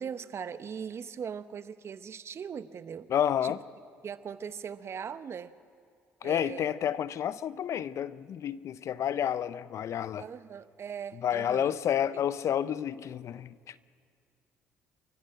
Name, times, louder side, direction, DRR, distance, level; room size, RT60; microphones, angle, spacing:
voice 1, 0.0-3.1 3.4-3.5 4.0-5.5 6.2-6.7 10.2-11.7, right 7 dB, 45° right, 0.9 m, -39 dB
voice 2, 3.1-3.6 6.2-10.3 11.2-13.8, left 9 dB, 55° left, 0.6 m, -30 dB
29.0 x 14.5 x 7.9 m
hypercardioid pair, 60°, 6 cm